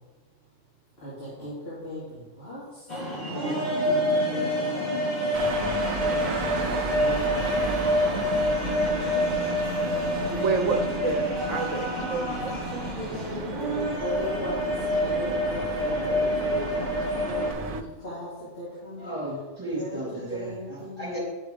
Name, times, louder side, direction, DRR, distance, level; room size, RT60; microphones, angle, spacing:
voice 1, 1.0-3.0 3.3-5.1 6.9-7.7 9.6-10.0 10.3-10.4 11.4-12.0 12.4-12.7 13.0-19.1 19.7-21.1, equal, 50° left, -9 dB, 2.9 m, -38 dB
sound 1, 2.9-17.5, equal, 35° left, 2.2 m, -27 dB
sound 2, 5.3-17.8, right 5 dB, 50° right, 0.4 m, -35 dB
voice 2, 10.4-12.9, right 4 dB, 70° right, 4 dB, 1.1 m, -29 dB
voice 3, 19.0-21.2, right 1 dB, 15° right, -7 dB, 3.8 m, -34 dB
10.5 x 5.8 x 5.1 m, 1.2 s
omnidirectional pair, 1.4 m